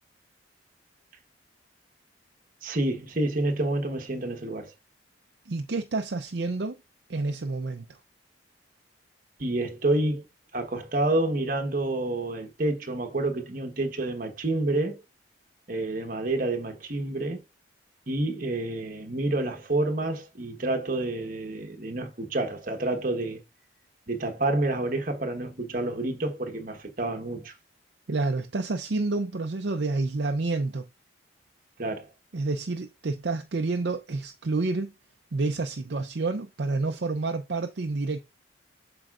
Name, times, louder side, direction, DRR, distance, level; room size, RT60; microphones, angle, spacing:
voice 1, 2.6-4.7 9.4-10.2 10.5-15.0 15.7-17.4 18.1-23.4 24.1-27.5 31.8-32.1, right 2 dB, 45° right, 1.2 m, -28 dB
voice 2, 5.5-6.8 7.1-8.0 28.1-30.9 32.3-34.9 35.3-38.2, right 3 dB, 60° right, 0.5 m, -29 dB
7.8 x 5.0 x 2.4 m
head